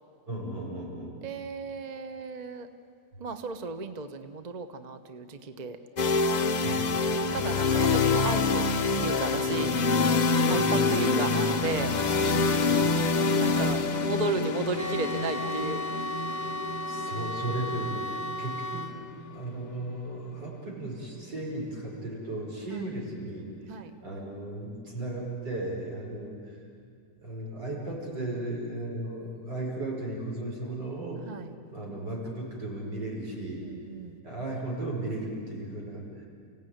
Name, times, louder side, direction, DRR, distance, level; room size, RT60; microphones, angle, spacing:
voice 1, 0.3-1.2 6.6-6.9 11.0-11.7 12.6-12.9 16.9-18.9 19.3-23.5 24.0-26.6 27.2-31.2 31.7-33.7 34.2-36.0, right 2 dB, 75° right, -3 dB, 6.0 m, -35 dB
voice 2, 1.2-2.7 3.2-5.8 7.3-9.8 10.5-11.9 13.3-15.8 22.7-22.9 23.7-23.9 31.2-31.5 33.3-34.2, right 3 dB, 30° right, 8 dB, 0.8 m, -34 dB
sound 1, 6.0-19.8, left 4 dB, 45° left, 0.5 m, -26 dB
sound 2, 14.7-18.9, left 1 dB, 10° left, 1.2 m, -34 dB
29.5 x 16.5 x 9.3 m, 2.3 s
omnidirectional pair, 1.8 m